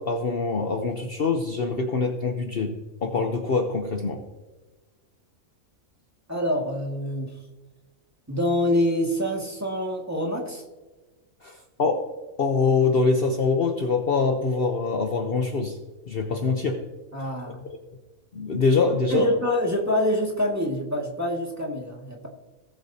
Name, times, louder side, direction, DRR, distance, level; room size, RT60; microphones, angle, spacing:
voice 1, 0.0-2.7 3.0-4.2 11.4-12.0 12.4-15.8 16.1-16.8 18.3-19.3, left 4 dB, 50° left, 4 dB, 1.0 m, -24 dB
voice 2, 6.3-7.3 8.3-10.6 17.1-17.7 19.1-22.3, left 1 dB, 10° right, -1 dB, 1.9 m, -26 dB
18.0 x 7.7 x 2.8 m, 1.2 s
omnidirectional pair, 1.4 m